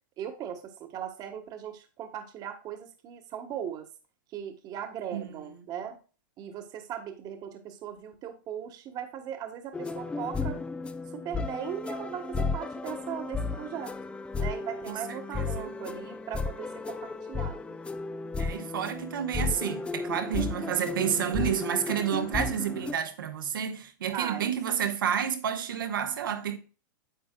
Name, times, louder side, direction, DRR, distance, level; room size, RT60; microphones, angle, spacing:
voice 1, 0.2-3.9 4.3-6.0 6.4-10.6 11.1-13.9 14.4-17.7 24.1-24.5, right 9 dB, 35° right, 1.3 m, -38 dB
sound 1, 9.7-22.9, left 4 dB, 10° left, 0.5 m, -34 dB
voice 2, 14.9-15.7 18.4-26.6, right 8 dB, 80° right, 1.3 m, -30 dB
9.5 x 7.2 x 2.2 m
hypercardioid pair, 115°, 11 cm